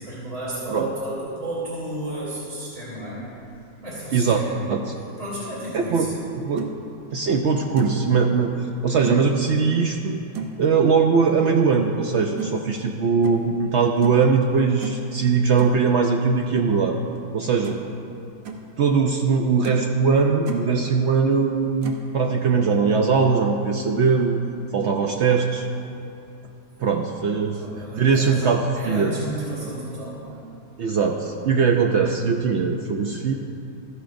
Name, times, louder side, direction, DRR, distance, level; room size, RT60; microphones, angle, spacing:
voice 1, 0.0-3.3 3.8-4.6 5.2-6.1 27.4-28.5 28.8-30.4, right 1 dB, 25° right, -9 dB, 2.9 m, -32 dB
voice 2, 4.1-4.4 4.7-4.9 5.7-6.1 6.4-6.7 7.1-8.5 8.8-10.2 10.6-17.0 17.3-17.8 18.8-24.4 24.7-25.7 26.8-27.6 27.9-29.1 30.8-33.3, right 5 dB, 75° right, 3 dB, 0.6 m, -21 dB
sound 1, 6.6-6.7 7.3-7.4 7.8-8.1 9.0-9.2 10.3-10.6 12.4-12.5 13.2-13.4 14.0-14.3 14.8-15.1 15.6-15.8 17.2-17.3 17.6-17.9 18.2-18.6 19.2-19.3 19.6-19.9 20.2-20.6 21.8-22.1, right 6 dB, 90° right, 1.4 m, -33 dB
13.5 x 11.0 x 2.6 m, 2.7 s
omnidirectional pair, 1.7 m